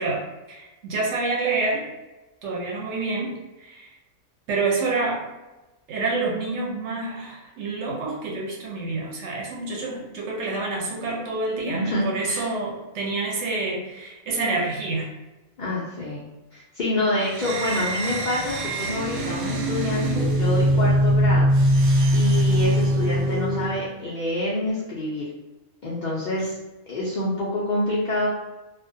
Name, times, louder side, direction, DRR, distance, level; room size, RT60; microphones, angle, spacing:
voice 1, 0.0-1.8 2.4-3.9 4.5-5.2 5.9-15.1, right 3 dB, 65° right, -2 dB, 0.8 m, -28 dB
voice 2, 11.7-12.5 15.6-16.2 16.5-21.5 22.1-25.3 25.8-26.6 26.9-28.3, left 1 dB, 85° left, -6 dB, 0.4 m, -27 dB
sound 1, 17.2-23.9, equal, 90° right, 1.0 m, -22 dB
2.4 x 2.1 x 2.5 m, 1.1 s
omnidirectional pair, 1.4 m